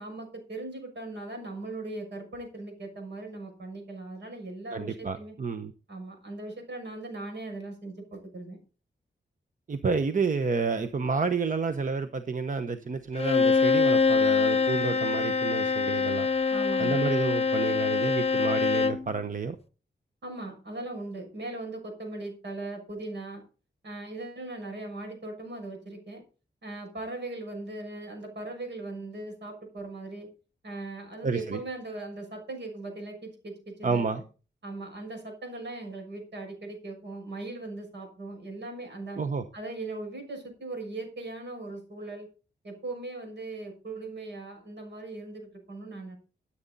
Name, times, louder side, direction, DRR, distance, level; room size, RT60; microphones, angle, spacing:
voice 1, 0.0-5.3 5.9-8.6 16.5-17.0 20.2-23.4 23.8-26.2 26.6-30.3 30.6-34.1 34.6-39.2 39.5-42.3 42.6-46.2, right 2 dB, 70° right, 3 dB, 6.2 m, -39 dB
voice 2, 4.7-5.7 9.7-16.3 16.8-19.6 31.2-31.6 33.8-34.2 39.2-39.4, right 4 dB, 45° right, 9 dB, 0.9 m, -30 dB
Bowed string instrument, 13.1-19.1, left 4 dB, 30° left, 0.7 m, -24 dB
14.0 x 8.7 x 4.0 m, 0.35 s
wide cardioid pair, 120°, 19 cm